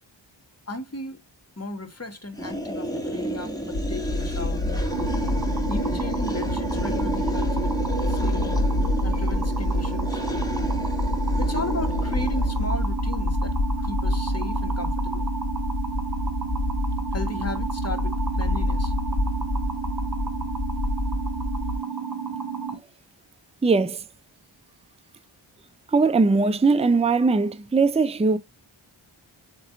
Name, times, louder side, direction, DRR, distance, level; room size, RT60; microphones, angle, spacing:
voice 1, 0.7-1.2 1.6-4.7 5.7-7.8 8.1-8.5 9.0-10.2 11.4-15.3 17.1-18.9, left 2 dB, 30° left, 1.7 m, -35 dB
sound 1, 2.4-12.8, equal, 10° left, 1.9 m, -32 dB
sound 2, 3.7-21.8, left 2 dB, 65° left, 1.0 m, -27 dB
sound 3, 4.9-22.7, right 6 dB, 40° right, 3.8 m, -32 dB
voice 2, 23.6-24.0 25.9-28.4, right 4 dB, 15° right, 0.5 m, -20 dB
7.9 x 3.1 x 4.0 m
wide cardioid pair, 50°, 48 cm